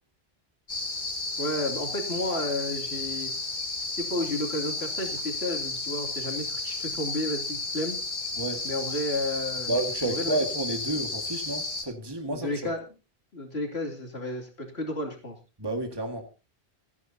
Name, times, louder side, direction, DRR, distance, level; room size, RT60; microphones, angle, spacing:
sound 1, 0.7-11.8, left 3 dB, 45° left, 2.1 m, -33 dB
voice 1, 1.4-3.3 4.0-8.0 8.6-9.7 10.0-10.4 12.3-12.8 13.3-15.4, left 1 dB, 80° left, 3.1 m, -32 dB
voice 2, 8.4-8.7 9.7-12.7 15.6-16.3, right 2 dB, 25° right, 1.9 m, -31 dB
28.5 x 9.7 x 2.8 m
omnidirectional pair, 1.0 m